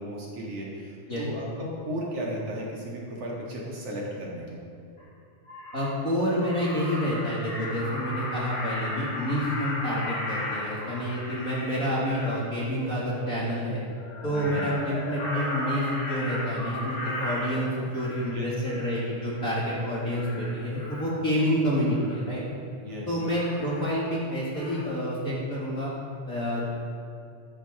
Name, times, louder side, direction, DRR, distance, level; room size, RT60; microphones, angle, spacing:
voice 1, 0.0-4.6 14.2-14.9 18.3-18.8 22.8-23.2, equal, 55° right, -4 dB, 2.8 m, -35 dB
Crow, 5.0-5.1 5.5-6.0 6.4-12.4 14.0-18.3 18.7-19.0 19.4-19.8 20.1-21.1 21.9-22.2 23.2-24.3 24.5-24.8, left 1 dB, 55° left, 3.5 m, -35 dB
voice 2, 5.7-13.8 14.2-22.4 23.1-25.9 26.3-26.6, equal, 30° left, -8 dB, 2.3 m, -28 dB
14.0 x 13.0 x 3.7 m, 2.5 s
omnidirectional pair, 3.7 m